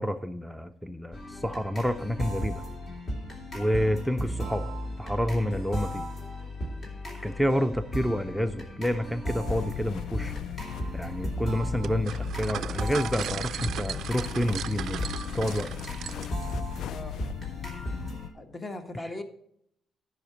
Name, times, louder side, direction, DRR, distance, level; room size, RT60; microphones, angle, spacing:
voice 1, 0.0-2.6 3.5-4.7 5.0-6.0 7.2-10.3 10.9-15.0 15.3-15.7, equal, ahead, 11 dB, 0.5 m, -29 dB
sound 1, 1.1-18.3, equal, 45° left, 3.0 m, -36 dB
sound 2, 9.5-18.3, left 11 dB, 75° left, 0.3 m, -38 dB
sound 3, 11.8-16.5, right 10 dB, 75° right, 0.3 m, -37 dB
voice 2, 18.3-19.2, left 2 dB, 30° left, 7 dB, 1.3 m, -39 dB
10.5 x 5.0 x 6.9 m, 0.72 s
cardioid pair, 90°, 0 cm